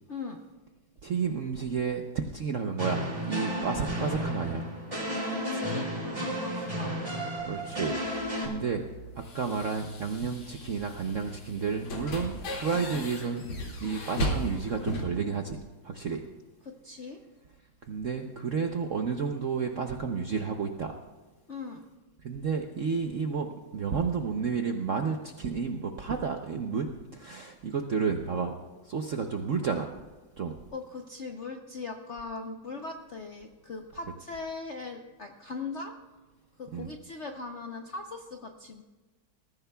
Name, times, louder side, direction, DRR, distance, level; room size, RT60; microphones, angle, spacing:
voice 1, 0.1-0.4 5.3-7.0 16.6-17.2 21.5-21.8 30.7-35.9 36.6-38.8, left 4 dB, 60° left, 3 dB, 0.7 m, -40 dB
voice 2, 1.0-4.7 6.6-6.7 7.4-8.0 8.4-13.4 13.8-15.6 15.8-16.2 17.9-21.0 22.2-28.6 28.8-29.9 30.4-30.6 36.7-36.9, right 5 dB, 60° right, 4 dB, 0.8 m, -31 dB
sound 1, 2.8-8.5, equal, 15° right, 2.9 m, -33 dB
sound 2, 7.6-15.0, left 1 dB, 85° left, 3.1 m, -37 dB
20.0 x 14.5 x 2.3 m, 1.2 s
omnidirectional pair, 2.2 m